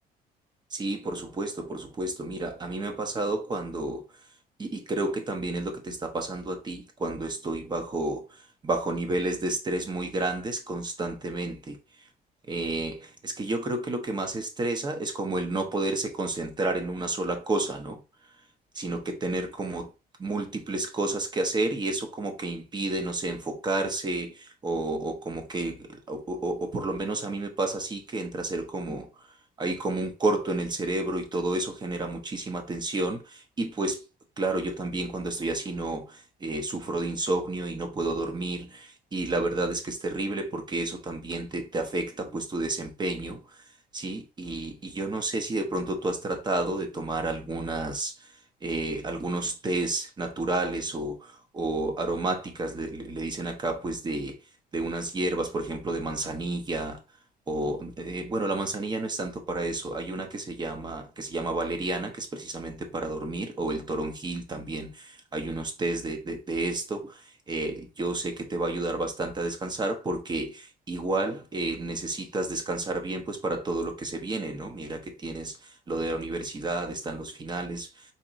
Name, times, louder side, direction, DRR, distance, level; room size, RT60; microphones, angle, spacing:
voice 1, 0.7-4.0 4.6-8.2 8.6-11.8 12.5-18.0 18.7-19.9 20.2-29.1 29.6-34.0 34.4-43.4 43.9-48.1 48.6-54.3 54.7-57.0 57.5-67.2 67.5-78.0, right 2 dB, 25° right, 0.8 m, -31 dB
4.2 x 3.0 x 2.5 m
cardioid pair, 110°, 17 cm